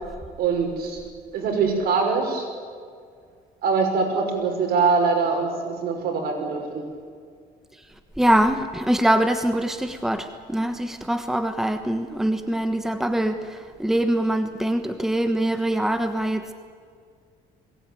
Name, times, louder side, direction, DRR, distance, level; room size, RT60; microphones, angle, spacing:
voice 1, 0.4-1.0 1.3-2.5 3.6-6.8, right 4 dB, 65° right, 1 dB, 6.2 m, -23 dB
voice 2, 8.2-16.4, right 1 dB, ahead, 8 dB, 1.2 m, -23 dB
21.5 x 18.0 x 9.2 m, 2.1 s
cardioid pair, 110°, 17 cm